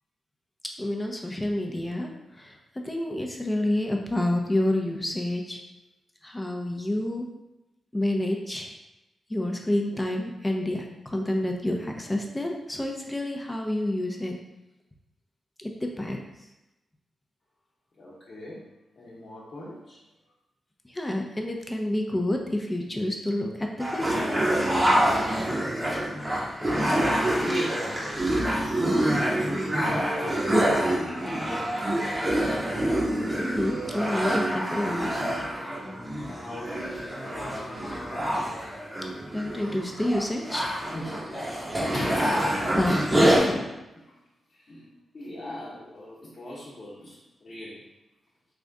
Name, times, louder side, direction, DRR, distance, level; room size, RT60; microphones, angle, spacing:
voice 1, 0.8-2.6 2.8-5.6 6.2-7.3 7.9-8.7 9.3-14.4 15.6-16.2 20.9-24.3 33.3-35.2 39.3-40.8 42.8-43.6, left 1 dB, 20° left, 2 dB, 0.7 m, -29 dB
voice 2, 18.0-18.7 19.0-20.0 26.6-28.3 28.6-31.7 35.6-38.7 40.9-42.6 42.8-43.5 43.9-44.2 44.5-47.8, left 1 dB, 60° left, -8 dB, 1.0 m, -39 dB
sound 1, 23.8-43.4, right 1 dB, 25° right, 0.9 m, -26 dB
3.4 x 2.6 x 3.5 m, 0.96 s
supercardioid pair, 40°, 0 cm